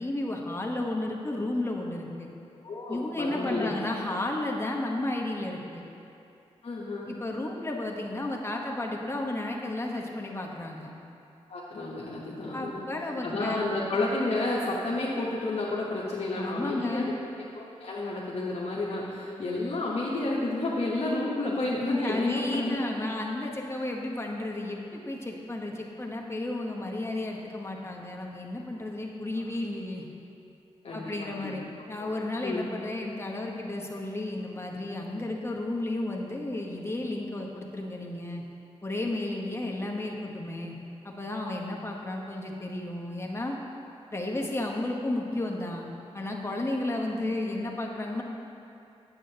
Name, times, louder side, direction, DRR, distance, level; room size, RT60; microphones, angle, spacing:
voice 1, 0.0-2.3 2.9-5.8 7.1-10.9 12.5-13.6 16.3-17.2 22.0-30.0 30.9-38.4 38.8-40.8 41.0-43.6 44.1-45.9 46.1-48.2, left 2 dB, 20° left, -1 dB, 1.0 m, -33 dB
voice 2, 2.6-3.8 6.6-7.1 11.5-12.9 13.2-17.1 17.5-22.8 30.8-31.6 32.0-32.1 32.4-32.6, left 2 dB, 60° left, -7 dB, 1.0 m, -31 dB
8.4 x 7.8 x 2.8 m, 2.7 s
cardioid pair, 55°, 12 cm